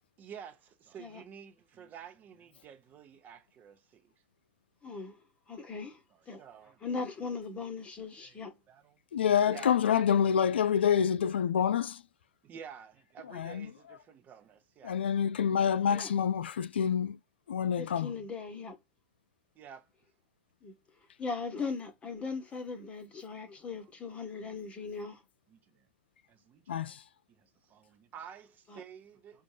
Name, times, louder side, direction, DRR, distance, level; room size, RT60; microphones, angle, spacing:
voice 1, 0.2-4.1 6.4-6.8 8.2-9.0 9.5-9.7 10.9-11.0 12.4-15.0 19.5-19.9 25.5-25.9 26.3-27.0 27.4-29.4, right 8 dB, 30° right, 0.9 m, -50 dB
voice 2, 4.8-5.2 5.5-6.0 6.3-6.4 6.8-8.5 15.9-16.1 17.8-18.8 20.6-20.7 21.2-25.2 28.7-28.8, left 4 dB, 20° left, 1.1 m, -39 dB
voice 3, 9.1-12.0 13.3-13.7 14.8-17.2 17.5-18.1 26.7-27.0, left 8 dB, 80° left, 0.4 m, -27 dB
5.2 x 2.4 x 3.3 m
hypercardioid pair, 110°, 6 cm